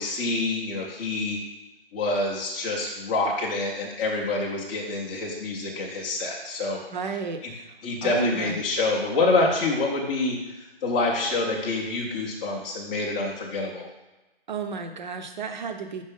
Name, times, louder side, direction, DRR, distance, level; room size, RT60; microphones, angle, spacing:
voice 1, 0.0-1.4 1.9-6.8 7.4-7.5 7.8-10.4 10.8-13.9, left 2 dB, 10° left, -2 dB, 0.5 m, -26 dB
voice 2, 6.9-7.7 8.0-8.6 14.5-16.0, right 5 dB, 50° right, 6 dB, 0.8 m, -32 dB
5.3 x 4.6 x 5.4 m, 1.1 s
figure-of-eight pair, 150°, 30 cm